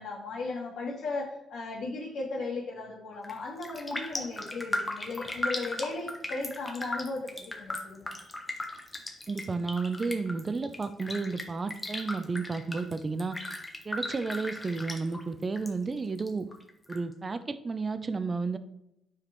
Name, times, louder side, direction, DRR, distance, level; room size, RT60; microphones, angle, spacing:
voice 1, 0.0-8.1, left 3 dB, 70° left, -4 dB, 2.8 m, -36 dB
Raindrop, 3.1-3.4 3.6-15.7 16.0-17.0 17.4-17.5, left 1 dB, 20° left, 1.1 m, -37 dB
voice 2, 9.3-13.4 13.8-16.5 16.9-18.6, right 4 dB, 30° right, 11 dB, 0.6 m, -32 dB
8.6 x 4.8 x 3.1 m, 0.83 s
cardioid pair, 90°, 0 cm